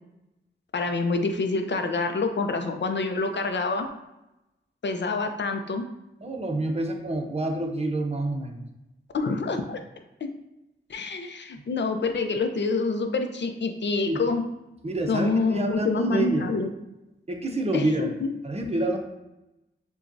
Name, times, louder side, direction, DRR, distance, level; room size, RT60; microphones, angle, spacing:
voice 1, 0.7-3.9 4.8-5.9 9.1-9.8 10.9-14.4 15.1-16.7 17.7-18.3, left 3 dB, 60° left, 6 dB, 0.6 m, -26 dB
voice 2, 6.2-8.6 14.0-14.2 14.8-16.5 17.3-18.1 18.4-19.0, right 2 dB, 30° right, 2 dB, 0.8 m, -28 dB
6.7 x 2.3 x 2.6 m, 0.95 s
cardioid pair, 55°, 21 cm